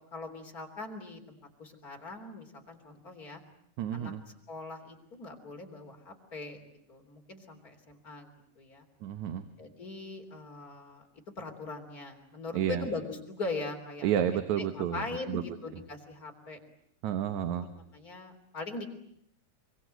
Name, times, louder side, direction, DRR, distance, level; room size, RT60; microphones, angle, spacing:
voice 1, 0.1-3.4 3.9-4.1 4.5-8.9 9.6-11.0 11.4-14.2 14.6-16.6 17.6-18.9, left 3 dB, 30° left, 3 dB, 3.8 m, -41 dB
voice 2, 3.8-4.2 9.0-9.5 12.5-12.9 14.0-15.4 17.0-17.7, right 10 dB, 80° right, 9 dB, 2.7 m, -31 dB
25.5 x 24.5 x 9.1 m, 0.72 s
omnidirectional pair, 3.3 m